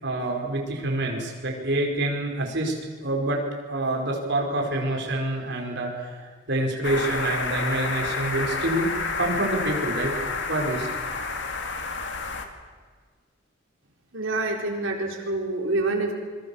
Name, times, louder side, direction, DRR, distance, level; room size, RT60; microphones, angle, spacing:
voice 1, 0.0-2.8 3.0-3.4 3.7-10.1 10.5-11.0, right 1 dB, 55° right, 0 dB, 5.1 m, -27 dB
sound 1, 6.8-12.5, left 4 dB, 60° left, 2.3 m, -29 dB
voice 2, 14.1-16.1, right 2 dB, 75° right, 1 dB, 4.3 m, -26 dB
26.0 x 23.0 x 7.2 m, 1.5 s
head